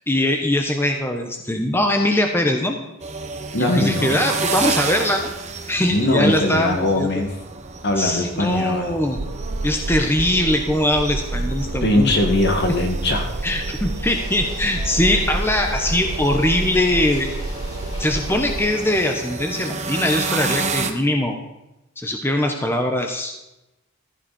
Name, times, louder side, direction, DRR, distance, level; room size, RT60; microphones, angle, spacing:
voice 1, 0.1-2.8 3.6-5.3 5.7-7.1 8.0-9.2 9.6-12.1 13.4-17.3 18.0-21.4 22.0-23.4, left 1 dB, 10° left, 3 dB, 1.1 m, -21 dB
sound 1, 3.0-20.9, right 4 dB, 30° right, 1.3 m, -31 dB
voice 2, 3.5-4.2 5.9-7.3 7.8-9.0 11.8-13.3, left 1 dB, 50° left, 4 dB, 2.2 m, -21 dB
sound 2, 9.2-18.6, right 2 dB, 65° right, 0.9 m, -28 dB
sound 3, 14.0-19.1, left 1 dB, 30° left, 3.2 m, -40 dB
15.0 x 14.5 x 4.4 m, 0.94 s
head